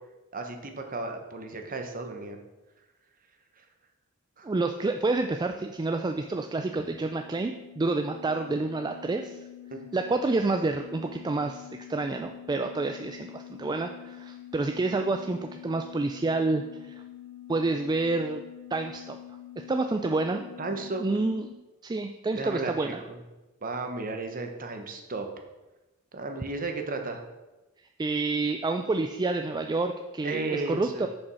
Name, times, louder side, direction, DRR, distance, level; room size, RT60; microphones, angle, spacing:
voice 1, 0.3-2.4 3.6-3.7 4.4-4.5 6.7-6.8 9.7-9.8 20.6-21.0 22.4-23.2 23.6-25.3 26.1-27.2 30.2-31.1, right 3 dB, 40° right, 4 dB, 1.1 m, -34 dB
voice 2, 4.4-9.4 9.9-17.0 17.5-18.4 18.7-19.2 19.6-20.4 21.0-21.5 21.8-23.0 28.0-31.1, right 3 dB, 20° right, 6 dB, 0.3 m, -28 dB
sound 1, 5.4-21.5, left 12 dB, 55° left, 1.0 m, -46 dB
7.0 x 5.3 x 6.2 m, 1.1 s
head